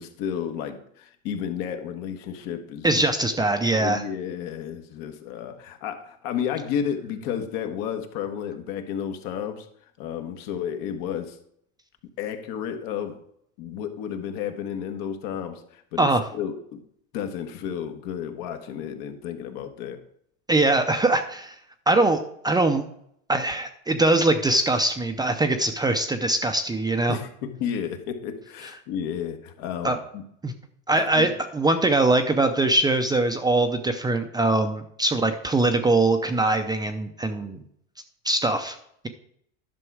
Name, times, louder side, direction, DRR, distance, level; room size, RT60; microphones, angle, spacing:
voice 1, 0.0-3.1 3.7-9.7 10.0-11.4 12.2-13.2 13.6-16.8 17.1-20.0 27.1-30.2 31.0-31.3, left 8 dB, 60° left, 6 dB, 1.5 m, -32 dB
voice 2, 2.8-4.0 16.0-16.2 20.5-21.6 21.9-22.8 23.3-27.2 29.8-30.0 30.4-30.5 30.9-37.6 38.2-38.8, right 2 dB, 10° right, 6 dB, 0.6 m, -22 dB
11.0 x 6.1 x 4.8 m, 0.70 s
supercardioid pair, 125°, 40 cm